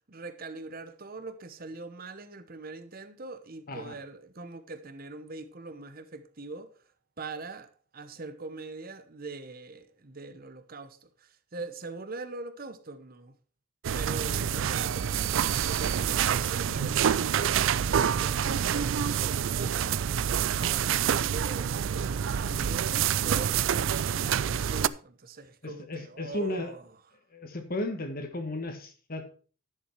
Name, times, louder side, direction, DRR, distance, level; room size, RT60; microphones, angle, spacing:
voice 1, 0.1-6.7 7.2-13.3 13.9-20.1 20.6-23.6 24.1-26.8, right 3 dB, 45° right, 1.0 m, -42 dB
sound 1, 13.8-24.9, right 8 dB, 65° right, 0.4 m, -27 dB
voice 2, 14.3-14.9 16.7-17.0 22.4-22.7 25.6-26.7 27.3-29.3, left 1 dB, 45° left, 1.5 m, -36 dB
10.0 x 7.3 x 4.6 m
head